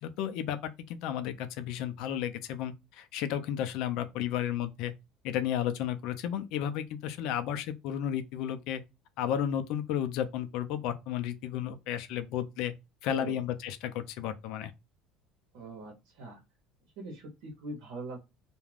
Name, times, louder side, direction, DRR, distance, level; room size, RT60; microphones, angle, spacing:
voice 1, 0.0-4.9 5.2-8.8 9.2-12.7 13.0-14.7, left 10 dB, 65° left, 0.4 m, -33 dB
voice 2, 15.5-16.4 17.0-18.2, right 2 dB, 75° right, 0.9 m, -41 dB
2.4 x 2.2 x 3.2 m
cardioid pair, 155°, 0 cm